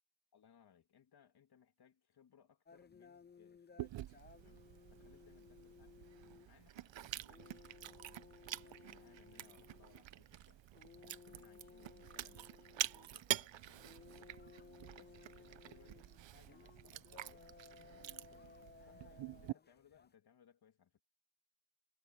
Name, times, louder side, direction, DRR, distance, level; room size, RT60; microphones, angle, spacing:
voice 1, 0.3-4.0 4.4-5.9 6.2-10.6 10.9-14.3 14.9-21.0, left 8 dB, 50° left, 3.4 m, -68 dB
sound 1, 2.7-20.1, left 5 dB, 20° left, 0.7 m, -61 dB
Chewing mastication, 3.8-19.5, right 13 dB, 65° right, 1.0 m, -47 dB
sound 2, 6.7-7.9 8.3-10.9 11.2-12.5 12.8-13.3 13.7-15.5, right 4 dB, 30° right, 3.8 m, -70 dB
cardioid pair, 105°, 48 cm